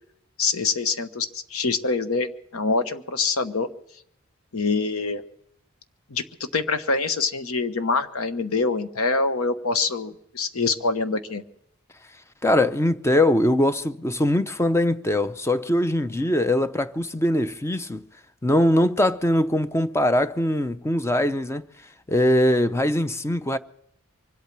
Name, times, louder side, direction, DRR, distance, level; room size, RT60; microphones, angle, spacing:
voice 1, 0.4-3.7 4.5-5.2 6.1-11.4, left 4 dB, 85° left, 1.1 m, -25 dB
voice 2, 12.4-18.0 18.4-21.6 22.1-23.6, left 1 dB, 10° left, 0.5 m, -22 dB
24.5 x 8.5 x 6.0 m
head